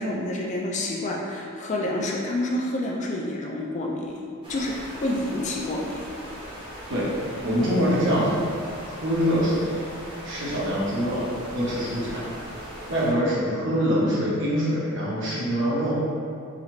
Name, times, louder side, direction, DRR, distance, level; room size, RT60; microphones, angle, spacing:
voice 1, 0.0-4.2 4.5-6.0, left 1 dB, 35° left, -1 dB, 0.4 m, -28 dB
sound 1, 4.4-13.1, equal, 25° right, 0.9 m, -39 dB
voice 2, 7.4-8.4 9.0-9.8 10.2-11.2 11.5-12.2 12.9-16.0, equal, 60° right, -8 dB, 1.2 m, -24 dB
4.0 x 3.0 x 3.1 m, 2.3 s
head